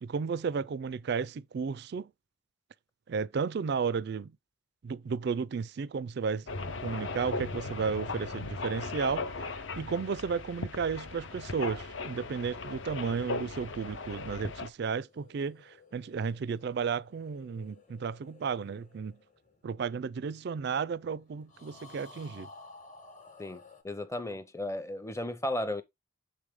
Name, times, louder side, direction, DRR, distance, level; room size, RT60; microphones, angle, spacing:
voice 1, 0.0-2.1 3.1-4.3 4.8-6.5 6.8-19.2 19.6-22.5, right 5 dB, 50° right, 0.3 m, -33 dB
sound 1, 6.5-14.7, left 3 dB, 60° left, 0.7 m, -38 dB
sound 2, 14.9-20.4 21.5-23.8, left 3 dB, 35° left, 1.1 m, -55 dB
voice 2, 23.4-25.8, left 1 dB, 15° left, 0.6 m, -35 dB
6.8 x 4.8 x 3.6 m
head